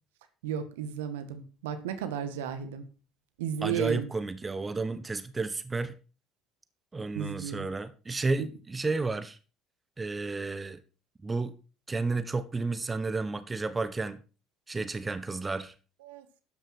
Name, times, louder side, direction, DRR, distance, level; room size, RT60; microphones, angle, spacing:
voice 1, 0.4-2.8 3.4-4.1 7.2-7.7 8.4-8.5 16.0-16.3, right 8 dB, 75° right, 1.8 m, -34 dB
voice 2, 3.6-5.9 6.9-9.4 10.0-10.8 11.2-11.5 11.9-14.2 14.7-15.7, right 3 dB, 20° right, 1.3 m, -32 dB
13.0 x 10.0 x 4.6 m
figure-of-eight pair, 60°, 0 cm